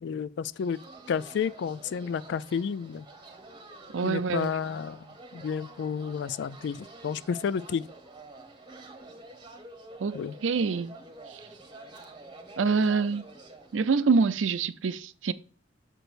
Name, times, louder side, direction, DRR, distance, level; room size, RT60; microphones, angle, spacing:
voice 1, 0.0-0.8 1.1-3.0 4.0-5.0 5.3-7.8 10.1-10.3, left 6 dB, 65° left, 0.3 m, -31 dB
sound 1, 0.6-14.2, right 2 dB, 25° right, 1.0 m, -48 dB
voice 2, 3.9-4.5 10.0-10.9 12.6-13.2 13.7-15.3, right 5 dB, 85° right, 0.5 m, -26 dB
6.6 x 6.1 x 2.5 m
head